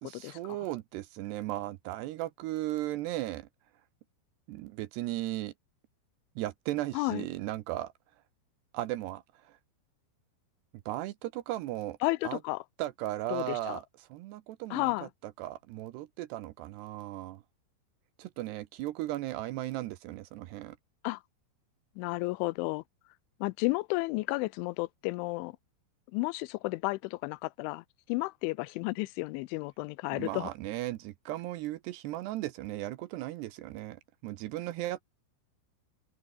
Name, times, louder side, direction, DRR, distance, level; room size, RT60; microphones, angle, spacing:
voice 1, 0.0-3.5 4.5-5.5 6.4-7.9 8.7-9.6 10.9-12.0 12.2-12.4 12.8-13.9 14.1-14.9 15.2-17.4 18.2-20.8 30.1-35.0, right 15 dB, 75° right, 2.6 m, -36 dB
voice 2, 6.9-7.3 12.0-12.6 13.3-13.8 14.7-15.1 21.0-21.2 22.0-22.8 23.4-25.6 26.1-30.5, left 23 dB, 85° left, 3.0 m, -32 dB
open air
omnidirectional pair, 5.5 m